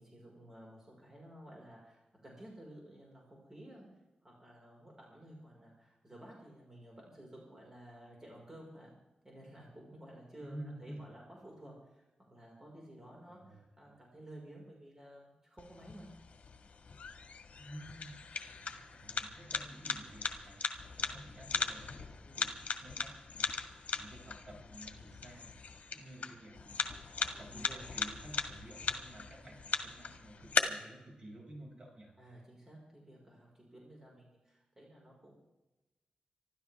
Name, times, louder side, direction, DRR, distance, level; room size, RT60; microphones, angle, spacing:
voice 1, 0.0-3.9 4.2-8.9 9.2-16.1 22.2-22.4 27.3-27.9 32.2-35.3, right 1 dB, 20° right, -3 dB, 5.1 m, -54 dB
voice 2, 10.4-11.1 13.3-13.6 17.6-18.2 18.6-20.6 21.0-22.5 22.8-23.5 23.9-25.5 25.9-26.8 27.2-32.1, right 1 dB, 40° right, -1 dB, 6.2 m, -51 dB
sound 1, 15.6-30.6, left 5 dB, 65° left, 1.8 m, -39 dB
26.0 x 13.0 x 3.6 m, 1.0 s
wide cardioid pair, 120°, 3 cm